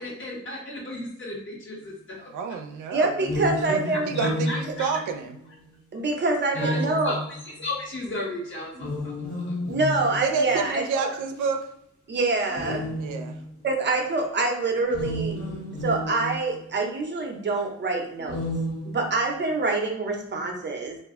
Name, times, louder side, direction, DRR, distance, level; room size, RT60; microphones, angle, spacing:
voice 1, 0.0-1.9 2.2-2.3 4.1-4.9 6.5-6.8 7.0-7.2 7.6-9.1 9.4-9.5, left 1 dB, 40° left, -3 dB, 1.1 m, -34 dB
voice 2, 2.3-3.8 4.1-5.4 10.2-11.7 13.0-13.4, right 5 dB, 90° right, 5 dB, 0.5 m, -29 dB
voice 3, 2.9-4.2 5.9-7.2 9.7-11.1 12.1-12.9 13.6-15.4 15.8-18.4 18.9-21.0, right 3 dB, 35° right, 2 dB, 0.6 m, -26 dB
sound 1, 3.2-5.6 6.5-7.8 8.7-10.6 11.4-11.5 12.5-13.5 14.8-16.6 18.2-19.4, equal, 75° left, 1.0 m, -31 dB
2.4 x 2.2 x 3.6 m, 0.74 s
cardioid pair, 90°, 30 cm